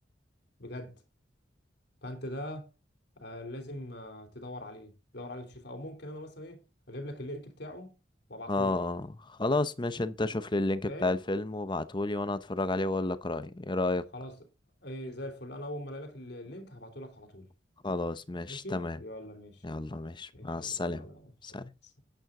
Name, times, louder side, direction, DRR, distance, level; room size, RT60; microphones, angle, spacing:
voice 1, 0.6-0.9 2.0-2.7 3.2-7.9 8.3-8.7 10.9-11.2 14.1-14.3 14.8-17.5 18.5-19.6 20.3-22.0, left 1 dB, 60° left, 3.3 m, -42 dB
voice 2, 8.5-14.0 17.8-19.0 19.6-21.1 21.4-21.7, left 2 dB, 25° left, 0.8 m, -31 dB
11.0 x 9.4 x 3.8 m
head